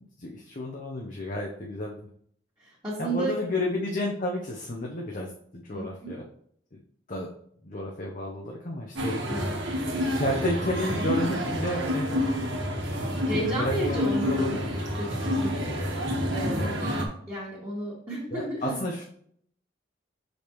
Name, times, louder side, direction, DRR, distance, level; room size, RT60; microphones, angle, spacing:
voice 1, 0.2-2.0 3.0-6.2 6.7-6.8 7.1-7.3 7.6-9.2 9.8-12.1 12.3-14.8 15.2-15.7 16.5-16.8 18.3-19.0, left 1 dB, 40° left, -1 dB, 0.8 m, -32 dB
voice 2, 2.6-3.4 5.7-6.2 9.3-9.5 13.2-14.6 14.9-15.5 16.3-16.9 17.3-18.8, right 1 dB, 15° right, -9 dB, 1.8 m, -32 dB
sound 1, 8.9-17.1, equal, 65° right, 1.3 m, -28 dB
6.4 x 5.2 x 3.0 m, 0.64 s
head